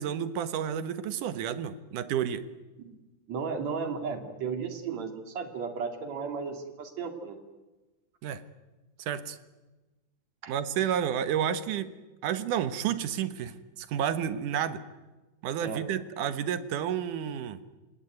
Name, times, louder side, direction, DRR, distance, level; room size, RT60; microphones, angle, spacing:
voice 1, 0.0-2.5 8.2-8.4 9.0-9.4 10.5-11.9 12.2-14.8 15.4-17.6, right 9 dB, 70° right, 12 dB, 2.6 m, -30 dB
voice 2, 3.3-7.4 10.4-10.5 15.6-15.8, right 5 dB, 55° right, 6 dB, 3.6 m, -34 dB
27.5 x 19.0 x 9.5 m, 1.2 s
omnidirectional pair, 4.0 m